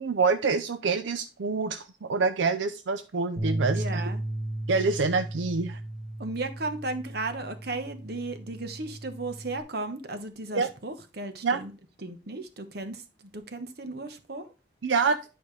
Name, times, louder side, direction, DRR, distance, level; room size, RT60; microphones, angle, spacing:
voice 1, 0.0-4.1 4.7-5.8 10.5-10.7 11.4-11.6 14.8-15.2, right 4 dB, 85° right, 9 dB, 0.5 m, -26 dB
Bass guitar, 3.4-9.6, right 1 dB, 30° right, 1.3 m, -35 dB
voice 2, 3.7-4.2 6.2-11.7 12.0-14.5, right 2 dB, 55° right, 8 dB, 1.1 m, -35 dB
10.5 x 5.1 x 3.2 m, 0.31 s
head